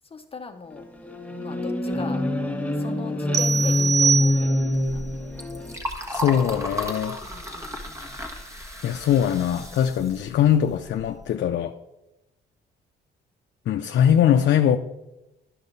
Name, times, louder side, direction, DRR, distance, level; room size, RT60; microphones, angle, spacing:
voice 1, 0.0-0.8 1.4-2.2 2.8-5.0 7.2-8.2, left 4 dB, 30° left, 0.7 m, -40 dB
sound 1, 0.7-5.8, left 1 dB, 5° left, 1.4 m, -25 dB
sound 2, 3.3-4.9, right 6 dB, 60° right, 0.7 m, -24 dB
Liquid, 4.6-11.2, equal, 15° right, 1.3 m, -35 dB
voice 2, 6.1-7.2 8.8-11.8 13.7-14.8, left 9 dB, 65° left, 0.5 m, -21 dB
11.5 x 5.6 x 4.0 m
cardioid pair, 90°, 20 cm